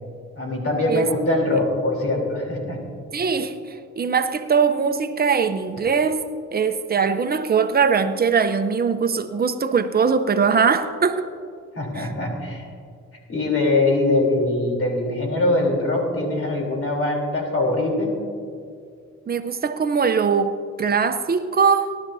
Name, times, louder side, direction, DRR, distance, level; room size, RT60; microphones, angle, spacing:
voice 1, 0.4-2.8 11.8-12.7 13.3-18.1, left 2 dB, 50° left, 3.6 m, -22 dB
voice 2, 3.1-6.2 6.5-11.3 12.0-12.1 19.3-22.0, right 6 dB, 30° right, 0.8 m, -21 dB
18.0 x 12.0 x 2.8 m
cardioid pair, 90°, 30 cm